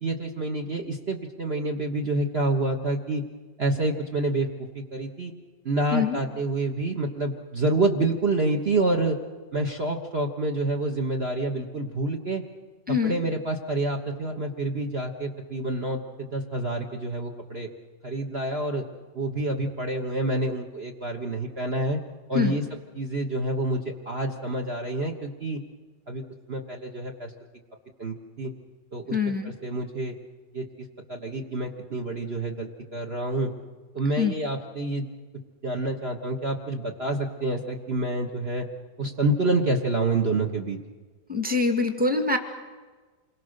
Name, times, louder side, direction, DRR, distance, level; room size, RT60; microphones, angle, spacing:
voice 1, 0.0-3.2 3.6-4.5 4.7-5.3 5.6-9.2 9.5-12.4 13.0-17.7 18.0-18.8 19.1-22.0 22.3-22.6 22.9-25.6 26.1-26.2 26.5-27.3 28.0-28.5 28.9-29.2 29.4-30.1 30.5-30.7 31.1-33.5 33.9-35.0 35.6-38.7 39.0-40.8, right 2 dB, 40° right, 3 dB, 1.5 m, -28 dB
voice 2, 12.9-13.2 22.3-22.6 29.1-29.5 34.2-34.3 41.3-42.4, left 4 dB, 5° right, 6 dB, 1.8 m, -24 dB
28.0 x 22.5 x 6.6 m, 1.4 s
omnidirectional pair, 1.7 m